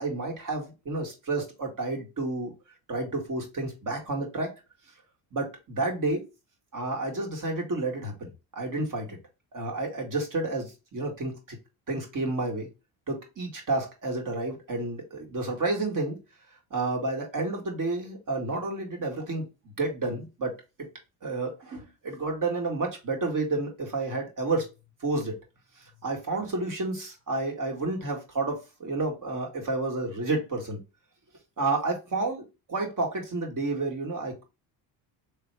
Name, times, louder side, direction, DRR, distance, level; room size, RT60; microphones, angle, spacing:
voice 1, 0.0-2.5 2.9-4.5 5.3-6.2 6.7-9.2 9.5-11.6 11.9-12.7 13.1-16.2 16.7-20.5 20.8-20.9 21.2-24.7 25.0-25.3 26.0-30.8 31.6-34.4, right 2 dB, 45° right, 1 dB, 2.0 m, -30 dB
3.5 x 3.3 x 4.4 m, 0.28 s
supercardioid pair, 80°, 46 cm